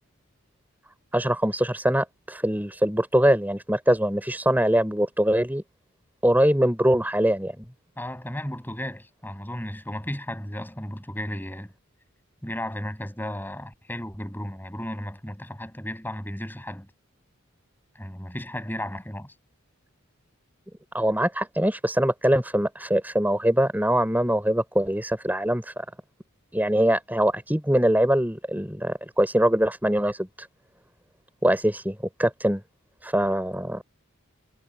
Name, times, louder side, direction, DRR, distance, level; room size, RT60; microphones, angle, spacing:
voice 1, 1.1-5.6 6.2-7.7 20.9-25.9 26.5-30.5 31.4-32.6 33.0-33.8, right 1 dB, 10° right, 4.1 m, -23 dB
voice 2, 8.0-11.7 12.4-16.9 17.9-19.3, left 1 dB, 10° left, 7.5 m, -34 dB
head